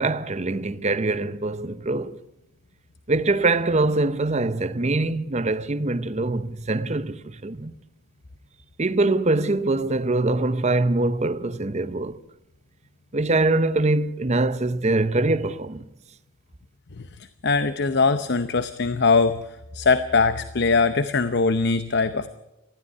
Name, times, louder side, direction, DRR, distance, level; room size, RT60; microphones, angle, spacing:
voice 1, 0.0-2.2 3.1-7.7 8.8-12.2 13.1-15.8, right 2 dB, 30° right, 0.8 m, -23 dB
voice 2, 17.4-19.4 19.7-22.3, left 4 dB, 55° left, 0.8 m, -21 dB
19.0 x 14.5 x 9.8 m
head